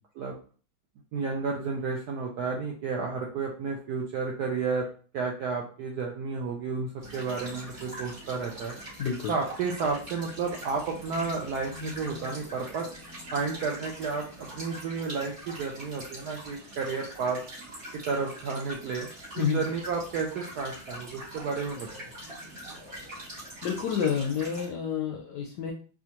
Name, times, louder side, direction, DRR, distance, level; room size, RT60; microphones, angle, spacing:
voice 1, 1.1-4.9 5.1-8.8 9.3-12.9 13.3-17.4 18.1-21.9, right 4 dB, 75° right, 0 dB, 0.9 m, -32 dB
sound 1, 7.0-24.7, right 1 dB, 45° right, 2.2 m, -43 dB
voice 2, 9.0-9.3 19.4-19.6 23.6-25.7, left 7 dB, 75° left, 1 dB, 0.9 m, -29 dB
4.2 x 2.4 x 2.8 m, 0.40 s
omnidirectional pair, 2.2 m